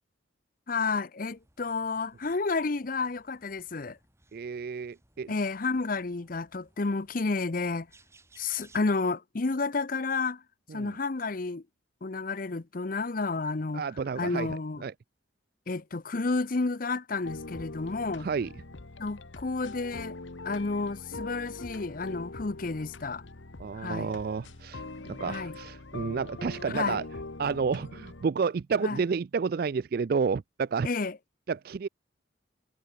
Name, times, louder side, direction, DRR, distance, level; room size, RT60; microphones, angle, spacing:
voice 1, 0.7-4.0 5.3-7.9 8.4-10.4 10.7-11.6 12.0-13.9 14.2-14.8 15.7-18.3 19.0-20.2 20.4-23.2 23.7-24.1 25.2-25.5 26.7-27.0 28.8-29.0 30.8-31.2, left 3 dB, 45° left, 0.7 m, -31 dB
sound 1, 1.3-8.8, right 2 dB, 15° right, 4.3 m, -63 dB
voice 2, 4.3-5.3 10.7-11.0 13.7-14.9 18.2-18.5 23.6-27.0 27.4-30.9 31.5-31.9, right 5 dB, 50° right, 0.3 m, -30 dB
sound 2, 17.2-28.2, left 2 dB, 75° left, 1.3 m, -43 dB
head